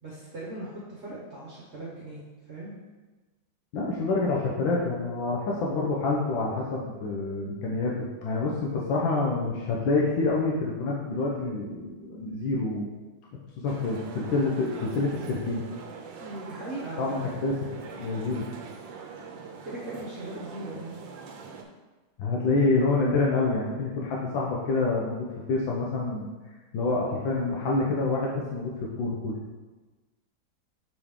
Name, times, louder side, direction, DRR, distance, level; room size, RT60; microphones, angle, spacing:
voice 1, 0.0-2.2 2.5-2.7 16.2-17.1 19.6-21.0, right 2 dB, 40° right, -6 dB, 1.3 m, -39 dB
voice 2, 3.7-12.9 13.6-15.6 17.0-17.7 18.0-18.5 22.2-26.3 26.7-28.7 29.0-29.4, left 3 dB, 85° left, -3 dB, 1.6 m, -27 dB
sound 1, 13.7-21.6, right 5 dB, 80° right, 1.4 m, -43 dB
6.8 x 5.0 x 3.7 m, 1.2 s
omnidirectional pair, 2.0 m